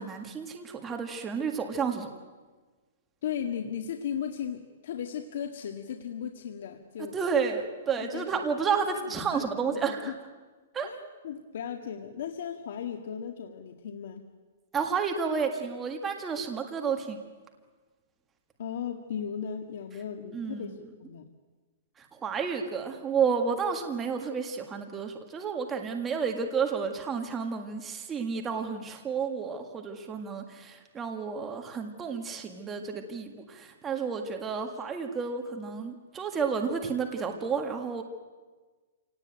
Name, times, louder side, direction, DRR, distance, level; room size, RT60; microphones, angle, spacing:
voice 1, 0.0-2.1 7.1-10.1 10.7-10.9 14.7-17.2 20.3-20.8 22.0-38.0, right 6 dB, 15° right, 4 dB, 1.8 m, -31 dB
voice 2, 3.2-7.2 8.0-8.2 9.1-10.2 10.8-11.0 11.2-14.2 18.6-21.3, left 8 dB, 60° left, 4 dB, 1.9 m, -36 dB
27.0 x 18.5 x 9.1 m, 1.4 s
hypercardioid pair, 165°, 0 cm